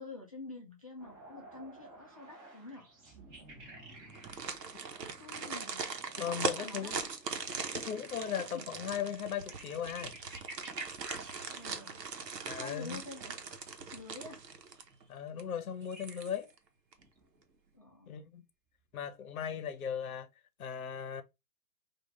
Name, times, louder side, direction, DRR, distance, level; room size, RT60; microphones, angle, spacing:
voice 1, 0.0-2.9 5.2-6.9 8.5-8.7 11.5-12.0 12.5-13.3 13.9-14.4 17.7-18.4, left 3 dB, 25° left, 0.4 m, -48 dB
sound 1, 1.0-14.3 14.7-15.1 15.8-16.4 16.9-17.7 19.0-19.1, right 2 dB, 20° right, 1.1 m, -53 dB
sound 2, 4.1-15.0 15.4-15.5 15.9-16.6 16.9-17.0, right 5 dB, 80° right, 1.0 m, -40 dB
voice 2, 6.2-7.0 7.7-10.1 12.5-13.0 15.1-16.5 18.1-18.4 18.9-20.3 20.6-21.2, left 8 dB, 60° left, 0.8 m, -37 dB
4.7 x 2.5 x 3.1 m
hypercardioid pair, 140°, 48 cm